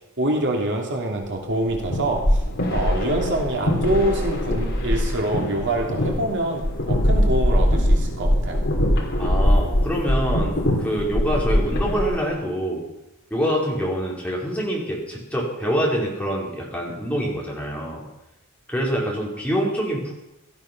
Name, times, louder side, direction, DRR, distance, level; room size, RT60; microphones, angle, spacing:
voice 1, 0.2-2.4 2.7-8.6, right 1 dB, 55° right, 1 dB, 2.7 m, -25 dB
sound 1, 1.5-12.3, equal, 55° left, 3.3 m, -22 dB
voice 2, 9.2-12.8 13.3-18.0 18.7-20.1, equal, 5° left, -4 dB, 4.6 m, -25 dB
17.5 x 13.5 x 6.0 m, 0.92 s
head